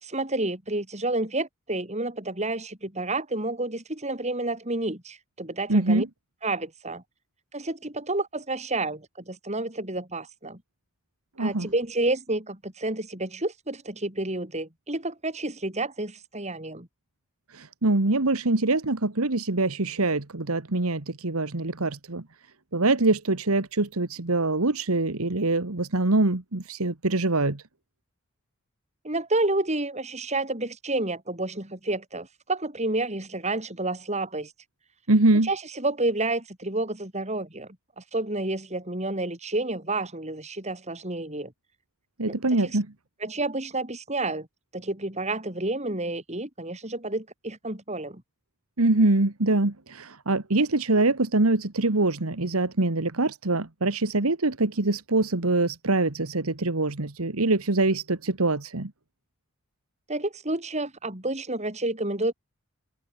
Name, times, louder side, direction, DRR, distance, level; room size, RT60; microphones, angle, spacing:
voice 1, 0.0-6.0 6.4-7.0 7.5-10.6 11.4-16.9 29.0-34.5 35.4-37.7 38.0-41.5 42.3-42.8 43.2-44.5 44.7-48.2 60.1-62.3, right 2 dB, 30° right, 4.7 m, -30 dB
voice 2, 5.7-6.1 11.4-11.7 17.5-22.2 22.7-27.6 35.1-35.5 42.2-42.9 48.8-58.9, right 2 dB, 85° right, 1.8 m, -24 dB
head